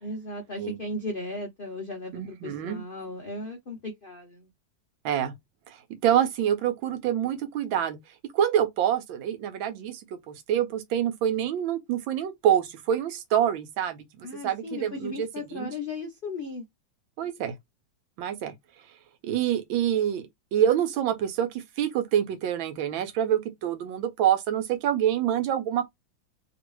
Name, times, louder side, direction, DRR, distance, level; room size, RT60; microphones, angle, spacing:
voice 1, 0.0-4.5 14.2-16.7, left 2 dB, 70° left, 0.5 m, -36 dB
voice 2, 2.1-2.8 5.0-5.3 5.7-8.0 8.3-15.7 17.2-17.5 18.2-18.5 19.2-20.2 20.5-25.8, right 10 dB, 80° right, 1.5 m, -26 dB
2.9 x 2.9 x 3.0 m
omnidirectional pair, 2.1 m